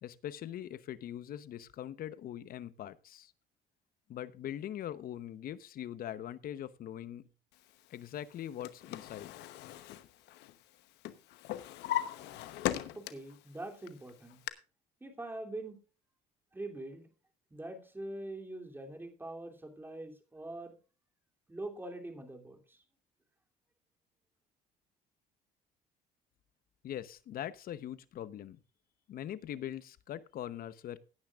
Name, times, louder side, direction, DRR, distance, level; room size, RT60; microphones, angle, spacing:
voice 1, 0.0-3.3 4.1-7.3 7.9-9.3 26.8-28.6 29.1-31.0, left 11 dB, 60° left, 15 dB, 0.9 m, -42 dB
Drawer open or close, 8.3-10.7 11.0-13.4 13.8-14.5, left 13 dB, 85° left, 1.0 m, -38 dB
voice 2, 12.9-14.4 15.0-15.8 16.5-17.1 17.5-20.8 21.5-22.8, right 2 dB, 10° right, 3 dB, 2.9 m, -43 dB
17.5 x 9.6 x 2.4 m, 0.34 s
cardioid pair, 110°, 17 cm